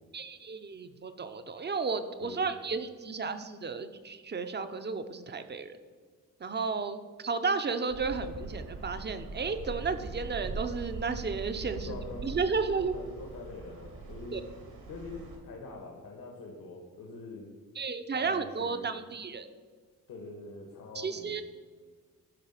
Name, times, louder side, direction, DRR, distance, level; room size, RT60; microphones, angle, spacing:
voice 1, 0.1-5.8 6.4-12.0 12.2-12.9 14.3-14.4 17.8-19.5 20.9-21.4, right 4 dB, 30° right, 9 dB, 0.6 m, -33 dB
sound 1, 7.9-15.4, right 4 dB, 80° right, 2.1 m, -41 dB
voice 2, 11.7-12.4 12.8-14.4 14.9-17.5 18.1-18.9 20.1-21.4, left 3 dB, 65° left, 1 dB, 1.5 m, -44 dB
12.0 x 4.2 x 5.7 m, 1.5 s
cardioid pair, 125°, 36 cm